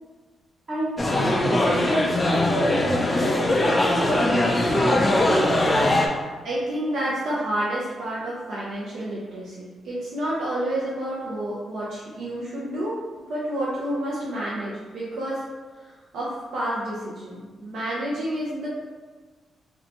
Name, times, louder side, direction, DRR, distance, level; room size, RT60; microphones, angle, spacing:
voice 1, 0.7-4.6, equal, 40° right, -8 dB, 1.3 m, -29 dB
sound 1, 1.0-6.1, left 1 dB, 15° left, 0.3 m, -21 dB
voice 2, 6.4-13.0 13.3-15.5 15.8-18.7, right 1 dB, 65° right, -8 dB, 0.7 m, -29 dB
3.3 x 2.7 x 2.8 m, 1.4 s
wide cardioid pair, 180°, 0 cm